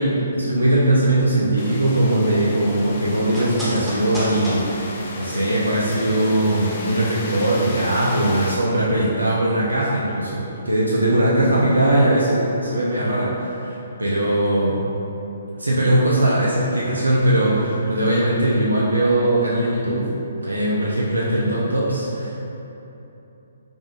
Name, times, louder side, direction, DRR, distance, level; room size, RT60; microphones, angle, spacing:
voice 1, 0.0-14.8 15.6-20.1 20.4-22.3, right 1 dB, 90° right, -6 dB, 0.5 m, -20 dB
sound 1, 1.6-8.6, left 2 dB, 45° left, 0.4 m, -34 dB
sound 2, 1.9-6.2 6.5-6.6, equal, 5° right, 1.0 m, -34 dB
5.0 x 2.4 x 2.3 m, 3.0 s
figure-of-eight pair, 135°, 0 cm